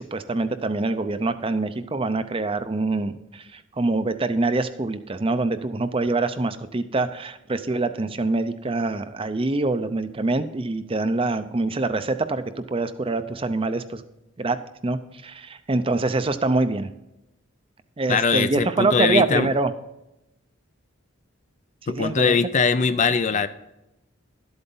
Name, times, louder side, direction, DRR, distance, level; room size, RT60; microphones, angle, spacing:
voice 1, 0.0-12.4 12.7-14.0 14.4-14.6 14.8-16.9 18.0-19.7 21.8-22.4, right 3 dB, 25° right, 11 dB, 0.5 m, -25 dB
voice 2, 18.1-19.5 21.9-23.5, left 5 dB, 35° left, 12 dB, 0.4 m, -21 dB
12.0 x 8.0 x 3.8 m, 0.90 s
head